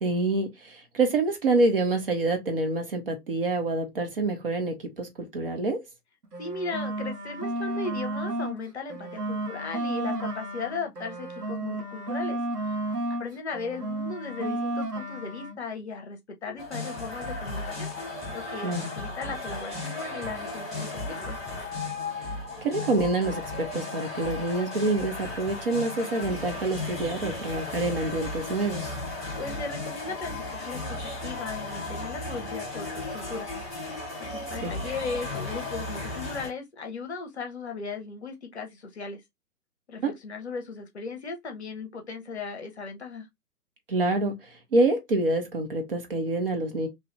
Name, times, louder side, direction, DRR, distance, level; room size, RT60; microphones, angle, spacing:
voice 1, 0.0-5.8 18.6-18.9 22.6-29.0 34.6-34.8 40.0-40.1 43.9-46.9, right 2 dB, 40° right, 0.7 m, -27 dB
sound 1, 6.2-8.6 8.9-13.3 13.5-15.6, right 1 dB, 85° right, 1.0 m, -32 dB
voice 2, 6.4-12.4 12.6-12.8 13.1-17.9 18.3-21.4 29.4-33.5 34.2-39.2 39.9-43.3, left 4 dB, 45° left, 0.7 m, -37 dB
sound 2, 16.6-36.5, left 2 dB, ahead, 1.0 m, -35 dB
2.8 x 2.3 x 3.0 m
figure-of-eight pair, 130°, 46 cm